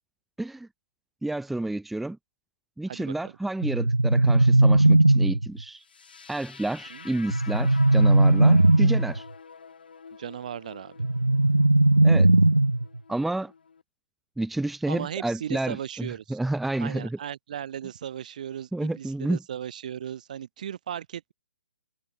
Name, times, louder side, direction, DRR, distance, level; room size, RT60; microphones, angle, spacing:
voice 1, 0.4-0.7 1.2-2.2 2.8-5.8 6.3-9.2 12.0-12.3 13.1-13.5 14.4-17.2 18.7-19.4, right 2 dB, ahead, 0.5 m, -30 dB
voice 2, 2.9-3.3 6.9-7.1 10.2-11.0 14.9-16.4 16.8-21.3, right 9 dB, 45° right, 0.7 m, -36 dB
sound 1, 3.6-5.6 7.3-9.2 11.0-13.0, right 2 dB, 85° right, 0.5 m, -19 dB
sound 2, 5.8-13.8, left 6 dB, 55° left, 5.5 m, -47 dB
figure-of-eight pair, 130°, 6 cm